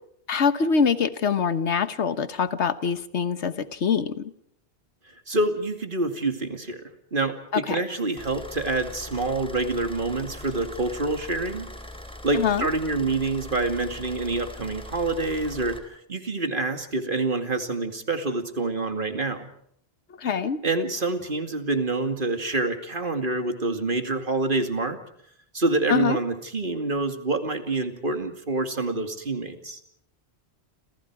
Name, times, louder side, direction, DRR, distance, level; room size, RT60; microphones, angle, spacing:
voice 1, 0.3-4.3 7.5-7.8 12.3-12.7 20.2-20.6 25.9-26.2, left 6 dB, 90° left, 13 dB, 1.5 m, -24 dB
voice 2, 5.3-6.8 7.1-11.7 12.2-15.8 16.1-19.5 20.6-25.0 25.5-29.8, right 2 dB, 50° right, 7 dB, 2.5 m, -27 dB
sound 1, 8.2-15.8, left 1 dB, 5° left, 3.5 m, -41 dB
29.5 x 27.5 x 4.8 m, 0.68 s
omnidirectional pair, 1.1 m